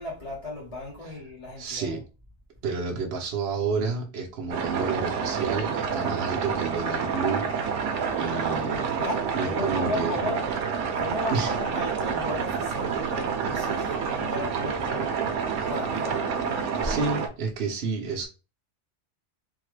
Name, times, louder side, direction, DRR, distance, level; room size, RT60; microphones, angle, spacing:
voice 1, 0.0-2.0 8.8-15.1 15.7-16.9, left 1 dB, 35° left, 0.8 m, -35 dB
voice 2, 1.6-2.0 2.6-8.9 9.3-10.1 11.3-11.5 16.8-18.3, right 4 dB, 65° right, 0.9 m, -30 dB
sound 1, 4.5-17.3, right 6 dB, 90° right, 0.9 m, -28 dB
3.5 x 2.1 x 3.1 m
omnidirectional pair, 1.2 m